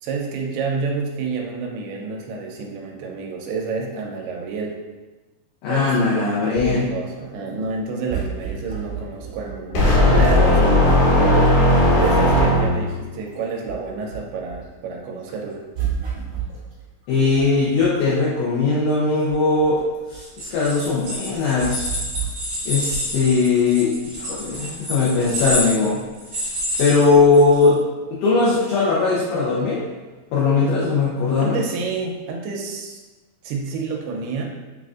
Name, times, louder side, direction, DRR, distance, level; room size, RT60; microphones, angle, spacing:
voice 1, 0.0-4.8 5.7-11.6 12.0-15.6 31.4-33.0 33.4-34.4, right 4 dB, 85° right, 1 dB, 2.6 m, -29 dB
voice 2, 5.6-6.9 17.1-19.8 20.1-21.9 22.6-26.0 26.8-27.8 28.1-29.8 30.3-31.6, left 4 dB, 90° left, -7 dB, 1.8 m, -19 dB
sound 1, 6.5-10.3 10.7-14.8 15.2-18.1 18.7-18.8 19.0-22.9 23.2-23.3 24.5-24.8 25.5-25.6, right 8 dB, 50° right, 1.9 m, -31 dB
sound 2, 9.7-13.0, left 1 dB, 70° left, 2.0 m, -16 dB
sound 3, 20.2-27.7, equal, 70° right, 0.9 m, -28 dB
7.3 x 2.5 x 2.4 m, 1.2 s
omnidirectional pair, 4.5 m